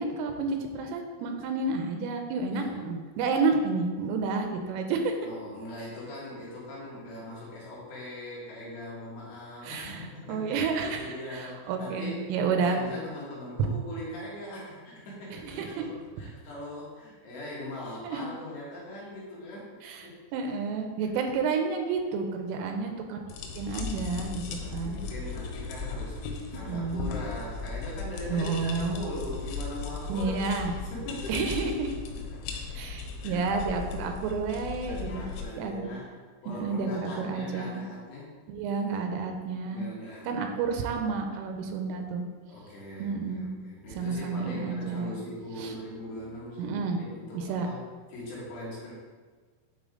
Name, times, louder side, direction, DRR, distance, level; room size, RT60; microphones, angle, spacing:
voice 1, 0.0-5.1 9.6-10.0 10.3-12.8 15.4-15.8 18.0-18.3 19.8-23.2 23.6-25.0 26.7-27.1 28.3-29.0 30.1-30.8 31.3-31.9 32.7-35.2 35.6-35.9 36.5-37.8 38.5-39.9 40.3-42.2 43.0-43.5 44.0-45.2 45.6-45.7 46.6-47.0 47.3-47.7, right 4 dB, 85° right, 4 dB, 3.2 m, -30 dB
voice 2, 2.5-2.8 5.2-10.6 10.9-20.3 22.6-23.6 24.6-26.3 26.5-30.5 30.8-32.8 33.2-33.5 34.9-36.1 36.4-38.4 39.7-40.5 42.5-47.8 48.1-48.9, left 1 dB, 65° left, -7 dB, 3.7 m, -41 dB
sound 1, 23.3-35.4, left 4 dB, 85° left, 3.6 m, -37 dB
10.5 x 4.4 x 3.8 m, 1.5 s
omnidirectional pair, 5.8 m